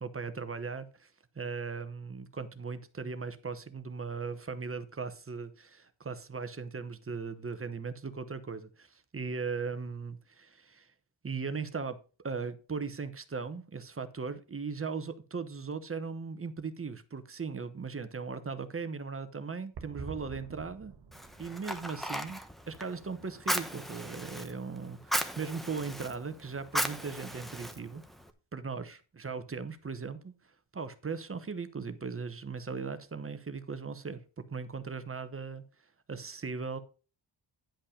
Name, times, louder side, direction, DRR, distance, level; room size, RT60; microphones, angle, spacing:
voice 1, 0.0-10.9 11.2-12.0 12.2-20.9 21.4-22.4 22.7-28.0 28.5-30.3 30.7-34.2 34.5-35.6 36.1-36.8, right 5 dB, 25° right, 0.9 m, -38 dB
sound 1, 19.7-23.5 23.8-23.9 24.1-24.2, right 5 dB, 55° right, 1.1 m, -48 dB
Fire, 21.1-28.3, equal, ahead, 0.8 m, -37 dB
10.5 x 5.3 x 5.0 m
wide cardioid pair, 125°, 48 cm